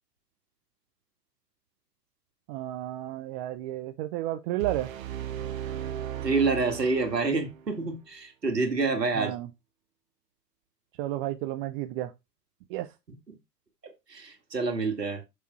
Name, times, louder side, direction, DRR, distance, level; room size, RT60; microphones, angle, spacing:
voice 1, 2.5-4.9 9.1-9.5 11.0-12.1 12.7-12.9, right 14 dB, 35° right, 0.7 m, -32 dB
sound 1, 4.6-7.7, right 10 dB, 55° right, 1.6 m, -36 dB
voice 2, 6.2-9.3 14.1-15.2, right 4 dB, 85° right, 2.1 m, -27 dB
7.0 x 6.3 x 4.4 m
figure-of-eight pair, 100°, 48 cm